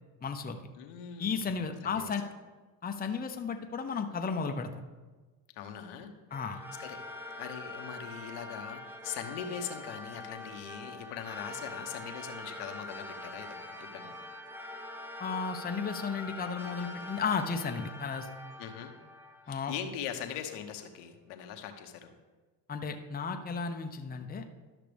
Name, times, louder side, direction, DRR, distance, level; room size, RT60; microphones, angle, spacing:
voice 1, 0.2-0.6 1.2-2.2 2.8-4.7 6.3-6.6 15.2-18.3 19.5-19.7 22.7-24.5, left 5 dB, 20° left, 6 dB, 0.7 m, -34 dB
voice 2, 0.7-2.1 5.6-6.1 6.8-14.1 18.6-18.9 19.5-22.1, left 8 dB, 75° left, 5 dB, 1.1 m, -41 dB
sound 1, 6.3-20.1, left 2 dB, 5° right, 1.0 m, -44 dB
12.5 x 5.9 x 3.4 m, 1.3 s
hypercardioid pair, 70°, 50 cm